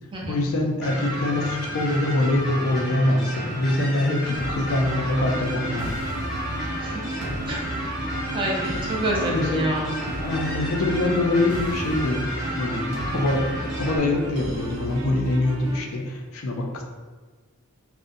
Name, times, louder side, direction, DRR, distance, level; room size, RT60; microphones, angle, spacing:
voice 1, 0.3-5.9 9.3-9.7 10.2-13.5 13.8-16.8, left 2 dB, 65° left, 1 dB, 0.4 m, -24 dB
sound 1, 0.8-14.0, equal, ahead, 0.8 m, -32 dB
sound 2, 4.4-15.8, right 1 dB, 85° right, 0.5 m, -33 dB
voice 2, 8.3-9.9, right 1 dB, 20° right, -3 dB, 0.4 m, -27 dB
2.5 x 2.1 x 2.5 m, 1.4 s
head